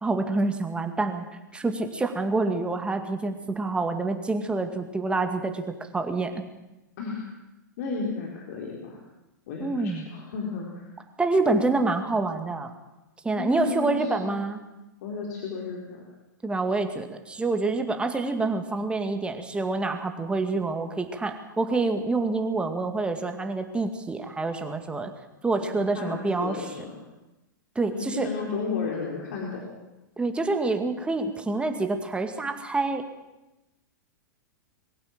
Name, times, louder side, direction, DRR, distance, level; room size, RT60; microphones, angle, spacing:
voice 1, 0.0-1.3 1.5-5.6 5.9-6.4 9.6-10.1 11.2-12.7 13.2-14.6 16.4-25.1 25.4-26.6 27.8-28.3 30.2-33.0, right 3 dB, 10° right, 6 dB, 2.2 m, -27 dB
voice 2, 7.0-7.3 7.8-9.0 9.5-10.9 13.4-14.4 15.0-16.0 25.6-27.0 27.9-29.7, left 4 dB, 55° left, -1 dB, 4.1 m, -33 dB
23.0 x 15.5 x 7.6 m, 1.0 s
figure-of-eight pair, 105°, 11 cm